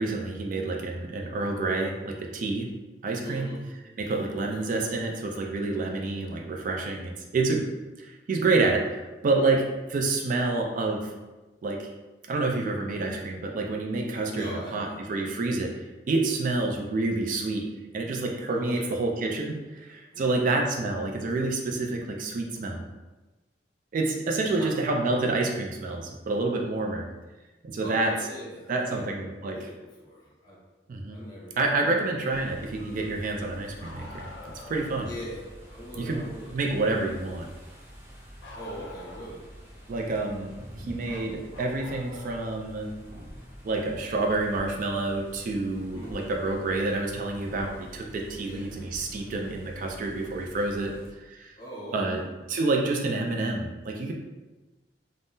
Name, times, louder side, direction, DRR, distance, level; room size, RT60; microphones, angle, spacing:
voice 1, 0.0-2.7 3.0-3.5 4.0-7.6 8.0-11.1 11.6-11.9 12.3-17.7 17.9-22.8 23.9-27.1 27.6-28.1 28.7-29.6 30.9-31.2 31.6-35.1 36.0-36.2 36.5-37.5 39.9-40.5 40.9-42.9 43.6-51.6 51.9-52.2 52.5-54.1, right 3 dB, 50° right, 1 dB, 0.3 m, -28 dB
voice 2, 3.2-3.6 4.3-4.7 14.3-15.3 18.5-18.9 20.1-20.4 24.3-24.7 27.8-29.2 29.5-30.6 31.1-32.4 35.0-36.6 38.5-39.5 45.9-46.3 48.3-48.7 51.6-52.2, equal, 25° left, -6 dB, 0.9 m, -41 dB
sound 1, 32.3-51.1, equal, 15° right, 0.6 m, -47 dB
Bark, 33.8-34.9 38.4-39.5 41.1-42.6 44.2-44.3 46.3-46.4 47.5-47.6, left 2 dB, 75° left, 0.4 m, -45 dB
sound 2, 43.0-43.6 44.3-44.7 46.0-46.3 47.4-47.8 48.7-49.1, equal, 65° right, 0.8 m, -45 dB
3.5 x 2.0 x 2.6 m, 1.2 s
head